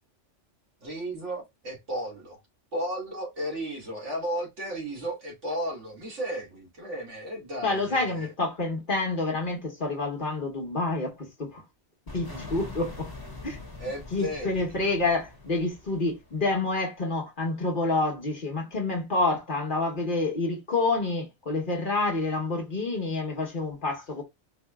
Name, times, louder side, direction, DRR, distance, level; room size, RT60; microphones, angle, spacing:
voice 1, 0.8-2.4 2.7-8.3 13.8-14.8, right 1 dB, 80° right, 1.9 m, -34 dB
voice 2, 7.6-11.6 12.1-13.1 13.4-13.6 14.1-24.2, left 3 dB, 45° left, 1.3 m, -28 dB
sound 1, 12.1-16.7, left 2 dB, 20° left, 1.3 m, -43 dB
4.7 x 2.6 x 2.3 m
omnidirectional pair, 1.2 m